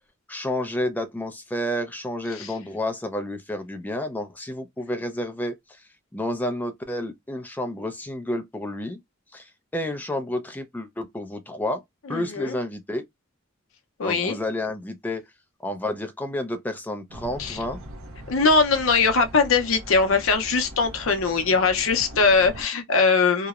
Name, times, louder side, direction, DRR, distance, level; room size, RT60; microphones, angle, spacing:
voice 1, 0.3-5.6 6.1-9.0 9.3-11.8 12.1-13.0 14.0-15.2 15.6-17.8, left 1 dB, 10° left, 0.4 m, -30 dB
voice 2, 12.1-12.6 14.0-14.4 17.4-17.6 18.3-23.5, left 4 dB, 80° left, 0.6 m, -21 dB
sound 1, 17.1-22.7, right 1 dB, 80° right, 0.7 m, -41 dB
2.8 x 2.0 x 2.3 m
head